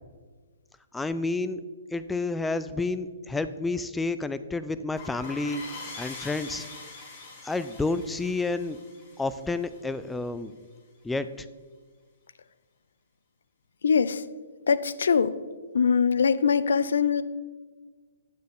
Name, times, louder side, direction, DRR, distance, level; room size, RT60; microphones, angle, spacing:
voice 1, 0.9-1.6 1.9-6.7 7.4-8.8 9.2-10.5 11.0-11.5, left 3 dB, 5° left, 13 dB, 0.3 m, -30 dB
sound 1, 5.0-10.3, left 3 dB, 35° left, 1.8 m, -43 dB
voice 2, 13.8-14.3 14.7-15.4 15.7-17.2, left 6 dB, 80° left, 15 dB, 0.4 m, -22 dB
9.1 x 7.8 x 3.5 m, 1.4 s
hypercardioid pair, 150°, 0 cm